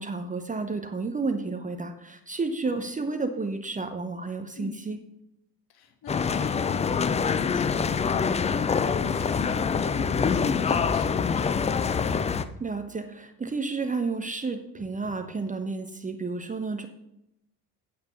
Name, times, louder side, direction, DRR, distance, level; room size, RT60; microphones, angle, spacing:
voice 1, 0.0-5.0 12.6-16.9, right 3 dB, 15° right, 7 dB, 0.9 m, -31 dB
voice 2, 5.7-11.9, left 6 dB, 50° left, 5 dB, 1.9 m, -43 dB
sound 1, 6.1-12.5, left 6 dB, 15° left, 0.5 m, -25 dB
8.9 x 8.5 x 5.8 m, 0.84 s
figure-of-eight pair, 60°, 48 cm